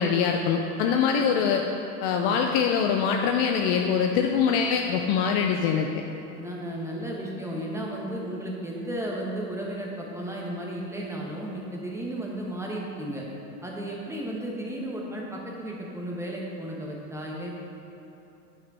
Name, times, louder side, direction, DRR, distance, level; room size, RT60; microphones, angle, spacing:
voice 1, 0.0-1.7 2.0-5.9, left 6 dB, 40° left, 3 dB, 0.5 m, -23 dB
voice 2, 6.4-13.2 13.6-17.5, right 1 dB, 5° right, -3 dB, 1.1 m, -34 dB
9.0 x 5.3 x 4.7 m, 3.0 s
hypercardioid pair, 115°, 49 cm